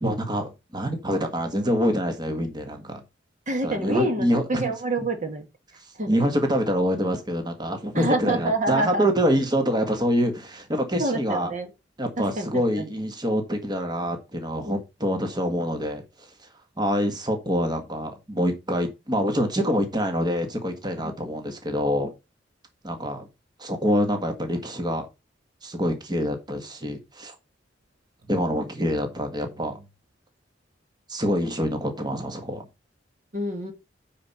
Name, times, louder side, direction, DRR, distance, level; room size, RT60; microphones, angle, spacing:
voice 1, 0.0-3.0 3.6-4.7 6.1-11.5 12.0-16.0 16.8-22.1 22.8-23.3 23.6-25.1 25.6-27.3 28.3-29.8 31.1-32.6, equal, 25° right, 1.6 m, -26 dB
voice 2, 3.5-5.4 6.0-6.2 7.9-9.1 11.0-11.7 12.2-12.5 12.8-12.9 14.6-14.8 21.0-21.3 33.3-33.7, right 1 dB, 45° right, 1.6 m, -27 dB
9.4 x 4.4 x 5.5 m
head